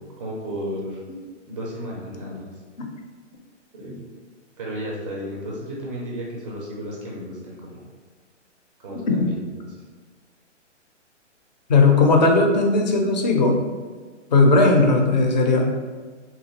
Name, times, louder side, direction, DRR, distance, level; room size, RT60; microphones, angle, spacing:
voice 1, 0.2-1.0 1.5-2.5 3.7-4.0 4.6-7.8 8.8-9.5, equal, 25° right, -3 dB, 0.4 m, -33 dB
voice 2, 11.7-13.6 14.3-15.7, left 3 dB, 40° left, 2 dB, 0.4 m, -17 dB
2.9 x 2.3 x 2.8 m, 1.5 s
hypercardioid pair, 135°, 36 cm